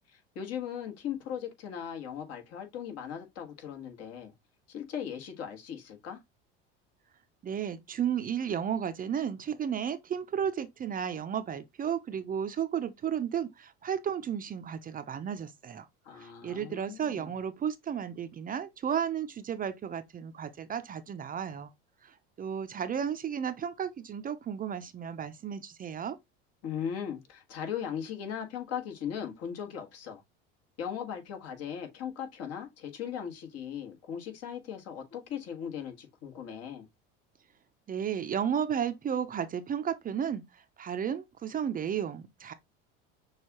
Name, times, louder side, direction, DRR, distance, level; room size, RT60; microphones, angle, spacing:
voice 1, 0.1-4.3 4.7-6.2 16.0-17.3 26.6-30.2 30.8-36.9, left 8 dB, 55° left, 1.6 m, -38 dB
voice 2, 7.4-15.9 16.1-21.7 22.0-26.2 37.9-42.5, right 8 dB, 30° right, 0.6 m, -33 dB
6.4 x 2.4 x 2.9 m
supercardioid pair, 95°, 29 cm